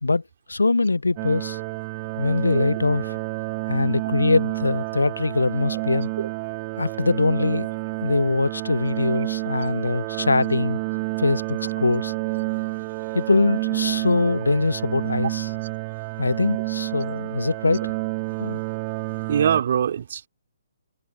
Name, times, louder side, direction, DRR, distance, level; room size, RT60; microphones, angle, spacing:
voice 1, 0.5-1.6 2.2-3.2 3.7-6.1 6.8-7.7 8.0-10.8 11.2-12.1 13.1-15.5 16.2-17.9 18.4-18.6, left 3 dB, 75° left, 0.8 m, -22 dB
sound 1, 1.2-19.6, right 28 dB, 30° right, 4.1 m, -29 dB
voice 2, 19.3-20.3, right 8 dB, 50° right, 4.3 m, -23 dB
figure-of-eight pair, 130°, 0 cm